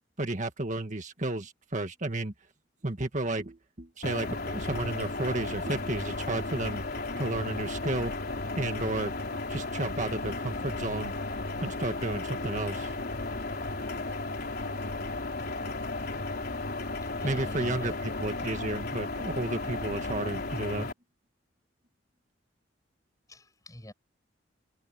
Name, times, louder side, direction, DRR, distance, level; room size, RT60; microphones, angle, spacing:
voice 1, 0.2-2.3 2.8-6.8 7.2-8.1 8.6-9.1 9.5-11.1 11.6-12.9 17.2-17.9 18.2-20.9, right 2 dB, 40° right, 1.9 m, -32 dB
sound 1, 4.0-20.9, left 2 dB, 55° left, 3.8 m, -34 dB
voice 2, 17.0-18.1 23.3-23.9, left 1 dB, 20° left, 7.9 m, -46 dB
head